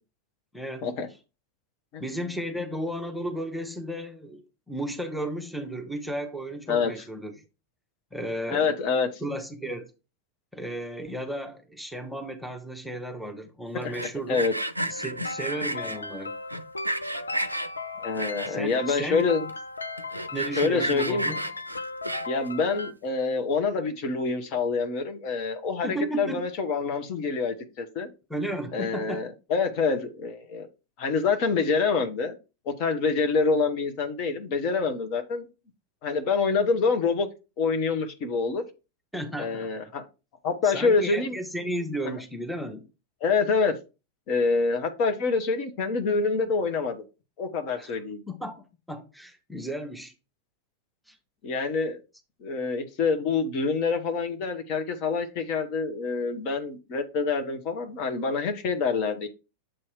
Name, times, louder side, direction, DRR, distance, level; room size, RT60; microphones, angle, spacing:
voice 1, 0.5-0.9 2.0-7.3 8.1-8.7 9.2-9.9 10.5-14.4 14.9-16.4 18.4-19.2 20.3-21.4 25.8-26.4 28.3-29.2 39.1-39.7 40.6-42.9 47.8-48.0 48.3-50.1 51.1-51.2, right 1 dB, ahead, 0.8 m, -34 dB
voice 2, 8.5-9.2 13.7-13.9 14.3-14.5 18.0-19.5 20.6-21.3 22.3-28.1 28.7-30.7 31.0-32.4 32.8-35.5 36.0-37.3 37.6-38.6 39.4-40.1 40.4-41.4 43.2-43.8 44.3-47.0 47.4-48.2 51.4-52.0 52.4-59.3, left 4 dB, 40° left, 0.9 m, -26 dB
Sawing, 13.8-16.0 16.5-17.7 18.2-18.8 19.2-19.3 19.5-19.6 20.0-22.5, right 1 dB, 85° right, 0.4 m, -31 dB
sound 1, 14.9-22.9, left 3 dB, 75° left, 0.4 m, -37 dB
7.5 x 2.9 x 4.7 m
figure-of-eight pair, 90°, 0 cm